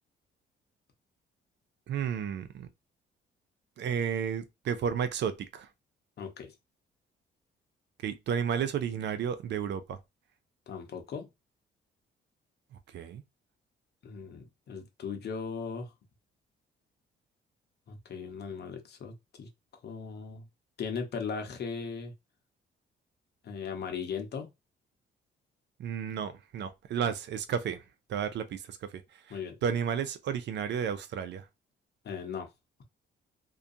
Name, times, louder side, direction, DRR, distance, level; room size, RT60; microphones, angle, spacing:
voice 1, 1.9-2.7 3.8-5.7 8.0-10.0 12.9-13.2 25.8-27.8 28.1-29.0 29.3-29.4 29.6-31.4, right 7 dB, 65° right, 0.5 m, -32 dB
voice 2, 6.2-6.5 10.7-11.3 14.0-15.9 17.9-19.5 19.8-20.4 20.8-22.1 23.4-24.5 29.3-29.5 32.0-32.5, left 6 dB, 55° left, 0.8 m, -38 dB
2.4 x 2.2 x 2.6 m
cardioid pair, 90°, 20 cm